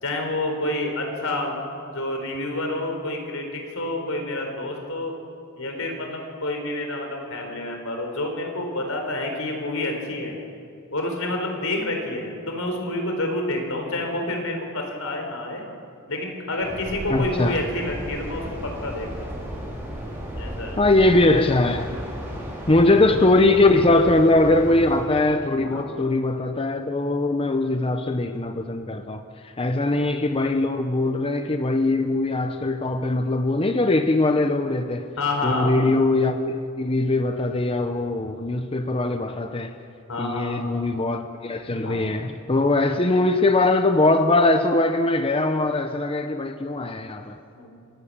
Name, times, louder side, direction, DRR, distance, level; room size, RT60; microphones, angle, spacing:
voice 1, 0.0-1.6 1.9-5.1 5.6-10.4 10.9-15.6 16.1-19.4 20.4-20.8 25.5-25.8 35.2-35.8 40.1-40.6 41.8-42.0 47.5-47.7, left 2 dB, 85° left, 3 dB, 4.3 m, -28 dB
sound 1, 16.6-25.0, equal, 10° right, 4.5 m, -34 dB
voice 2, 17.1-17.6 20.8-21.9 22.7-29.2 29.6-35.1 35.4-39.7 40.2-47.4, left 2 dB, 25° left, 7 dB, 0.7 m, -21 dB
25.0 x 12.0 x 8.7 m, 2.4 s
head